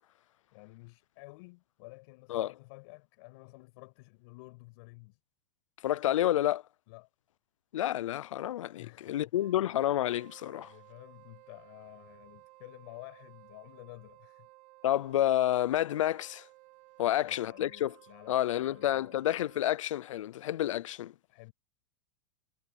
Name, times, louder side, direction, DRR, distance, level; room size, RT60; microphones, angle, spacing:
voice 1, 0.5-5.2 6.9-7.1 8.8-9.3 10.5-14.5 17.0-19.2 21.3-21.5, left 26 dB, 55° left, 6.8 m, -52 dB
voice 2, 5.8-6.6 7.7-10.7 14.8-16.5 17.0-17.9 18.3-21.1, left 12 dB, 85° left, 0.5 m, -29 dB
Wind instrument woodwind instrument, 9.3-19.9, right 23 dB, 45° right, 2.2 m, -57 dB
supercardioid pair, 140°, 16 cm